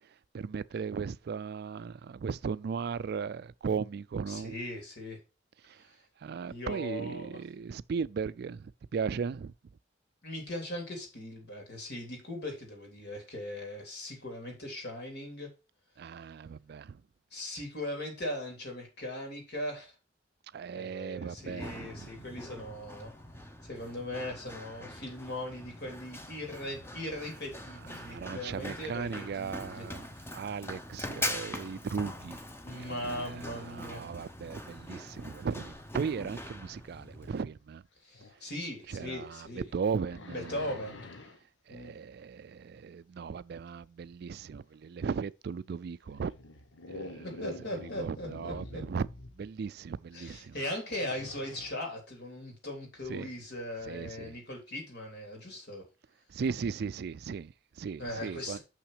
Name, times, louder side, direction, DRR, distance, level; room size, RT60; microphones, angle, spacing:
voice 1, 0.3-4.5 5.7-5.8 6.2-9.5 16.0-17.0 20.5-22.1 28.0-30.1 30.3-32.4 32.7-37.8 38.9-40.7 41.7-46.3 46.9-47.5 47.8-49.1 49.3-50.5 53.1-53.3 53.9-54.4 56.3-58.6, right 5 dB, 55° right, 0.3 m, -37 dB
voice 2, 4.3-5.2 5.8-6.0 6.5-7.4 10.2-15.5 17.3-19.9 20.7-23.1 23.6-29.9 32.6-34.0 38.0-39.7 40.3-41.1 41.7-42.0 47.2-48.8 50.1-55.8 58.0-58.6, left 1 dB, 60° left, 3.5 m, -39 dB
Run, 21.4-37.4, left 1 dB, 15° left, 0.8 m, -43 dB
sound 1, 32.6-34.3 37.2-37.3 38.1-38.4 39.0-41.4 45.2-45.3 46.0-49.5 50.7-51.9, left 2 dB, 85° left, 1.0 m, -47 dB
6.5 x 5.9 x 4.9 m
head